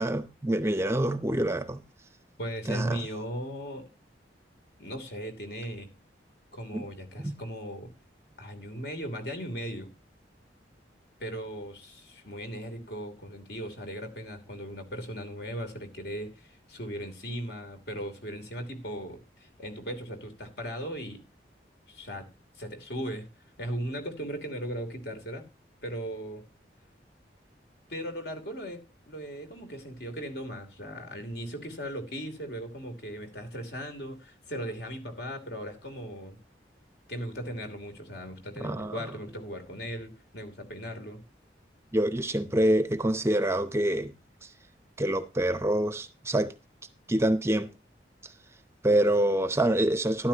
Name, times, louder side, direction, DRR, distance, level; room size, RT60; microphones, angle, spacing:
voice 1, 0.0-1.8 2.7-3.0 6.7-6.9 7.2-7.4 38.6-39.0 41.9-44.1 44.4-44.5 45.0-46.5 47.1-47.7 48.2-48.3 48.8-50.3, right 1 dB, 15° right, 0.6 m, -26 dB
voice 2, 2.4-3.9 4.8-5.9 6.5-7.9 8.4-9.9 11.2-21.2 21.9-22.3 22.5-23.3 23.6-25.5 25.8-26.4 27.9-36.4 37.1-41.2, equal, 60° left, 3.0 m, -38 dB
13.0 x 12.0 x 2.8 m
head